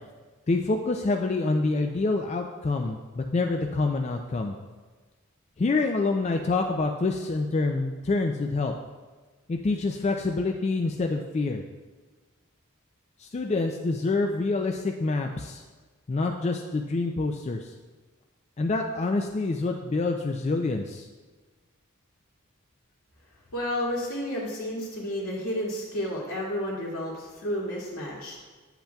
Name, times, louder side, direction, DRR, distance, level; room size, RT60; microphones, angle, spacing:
voice 1, 0.5-4.5 5.6-8.7 9.5-11.6 13.2-15.6 16.1-17.7 18.6-21.1, left 3 dB, 30° left, 3 dB, 0.3 m, -27 dB
voice 2, 23.5-28.5, left 1 dB, 85° left, -5 dB, 2.2 m, -31 dB
8.6 x 7.9 x 2.3 m, 1.3 s
head